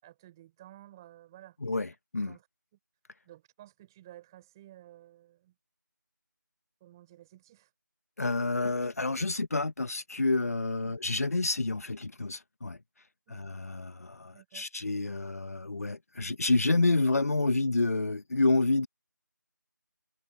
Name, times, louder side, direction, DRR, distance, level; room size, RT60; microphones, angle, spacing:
voice 1, 0.0-1.6 2.3-2.5 3.2-5.5 6.8-7.7 13.3-13.4 14.3-14.7, right 14 dB, 10° right, 5.8 m, -53 dB
voice 2, 8.2-12.8 13.3-18.9, left 3 dB, 50° left, 1.9 m, -28 dB
figure-of-eight pair, 170°, 11 cm